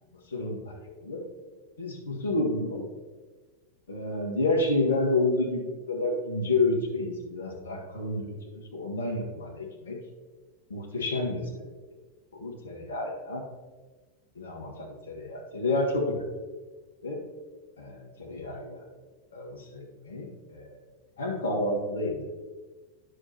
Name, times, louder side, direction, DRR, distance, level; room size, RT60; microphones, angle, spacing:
voice 1, 0.3-0.8 1.0-1.2 1.8-2.8 3.9-10.0 10.7-11.6 12.3-13.4 14.4-16.2 17.0-17.2 17.8-18.8 19.3-20.8 21.2-22.3, left 2 dB, 65° left, -1 dB, 1.7 m, -30 dB
9.8 x 6.6 x 2.9 m, 1.3 s
figure-of-eight pair, 90°, 0 cm